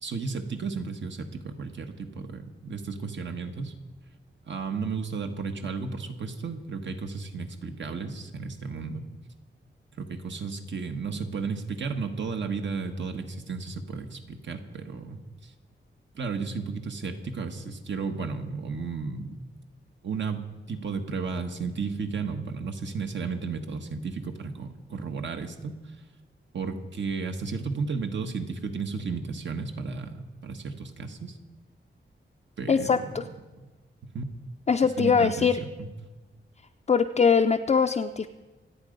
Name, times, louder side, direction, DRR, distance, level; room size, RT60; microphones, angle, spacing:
voice 1, 0.0-3.7 4.4-9.1 10.0-15.5 16.1-19.4 20.0-20.4 20.7-25.9 26.5-31.4 32.6-33.2 33.6-33.7 34.0-34.3 35.0-35.9, right 4 dB, 65° right, 6 dB, 1.5 m, -33 dB
voice 2, 32.7-33.2 34.7-35.6 36.9-38.3, left 6 dB, 35° left, 4 dB, 0.5 m, -22 dB
27.0 x 9.0 x 5.3 m, 1.2 s
wide cardioid pair, 170°, 20 cm